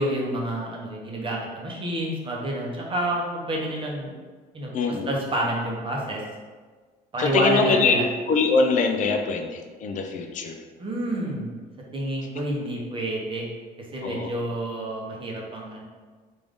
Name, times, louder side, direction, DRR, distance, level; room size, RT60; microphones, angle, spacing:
voice 1, 0.0-4.1 4.5-6.2 7.1-8.0 10.8-11.5 11.9-13.5 13.8-15.8, right 1 dB, 30° right, -2 dB, 0.8 m, -28 dB
voice 2, 4.7-5.1 7.2-10.6 14.0-14.3, left 4 dB, 50° left, 4 dB, 0.5 m, -23 dB
3.5 x 2.5 x 3.5 m, 1.4 s
cardioid pair, 110°, 17 cm